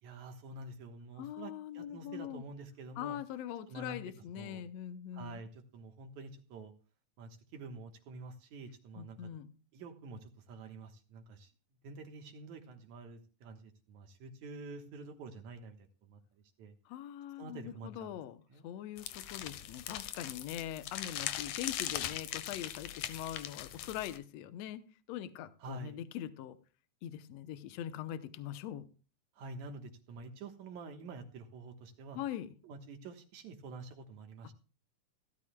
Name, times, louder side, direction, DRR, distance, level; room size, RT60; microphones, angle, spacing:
voice 1, 0.0-3.2 3.7-4.0 4.4-4.6 5.1-6.7 7.2-9.3 9.7-11.5 11.8-16.2 16.6-16.7 17.4-18.1 18.5-18.7 25.6-26.0 29.4-32.2 32.6-34.5, right 3 dB, 75° right, 5 dB, 2.6 m, -48 dB
voice 2, 1.2-2.4 3.0-5.4 9.0-9.5 16.9-24.8 25.1-26.6 27.0-28.9 32.2-32.5, left 11 dB, 70° left, 11 dB, 1.8 m, -42 dB
sound 1, 19.0-24.2, left 12 dB, 90° left, 2.3 m, -40 dB
17.0 x 12.5 x 2.2 m, 0.36 s
omnidirectional pair, 3.4 m